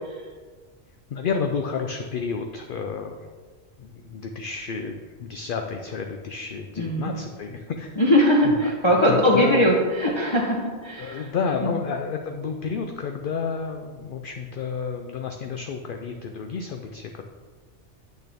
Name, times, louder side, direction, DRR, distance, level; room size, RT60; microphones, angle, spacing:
voice 1, 1.1-3.2 3.8-8.0 8.4-8.7 9.0-9.6 11.0-17.3, left 5 dB, 60° left, 4 dB, 0.6 m, -30 dB
voice 2, 6.8-7.1 8.0-11.2 11.6-11.7, equal, 25° left, -3 dB, 0.8 m, -20 dB
8.5 x 6.4 x 3.5 m, 1.5 s
omnidirectional pair, 1.2 m